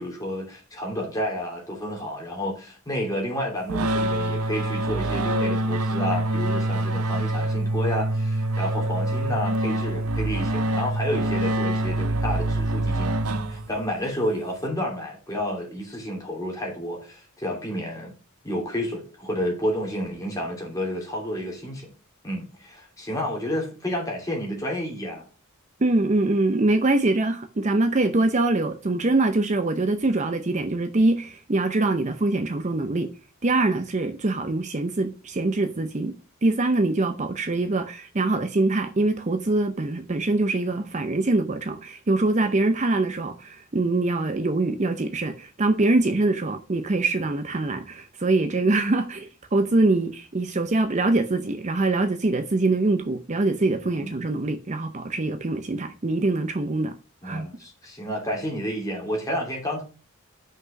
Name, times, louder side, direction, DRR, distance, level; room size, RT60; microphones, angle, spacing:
voice 1, 0.0-13.2 13.5-18.1 18.4-21.9 22.2-25.2 53.8-54.2 57.2-59.8, equal, 15° left, 2.9 m, -30 dB
sound 1, 3.7-14.0, right 1 dB, 80° right, 0.7 m, -25 dB
voice 2, 25.8-33.1 33.4-36.1 36.4-56.9 57.2-57.5, right 2 dB, 30° right, 0.6 m, -24 dB
5.9 x 5.4 x 6.3 m
head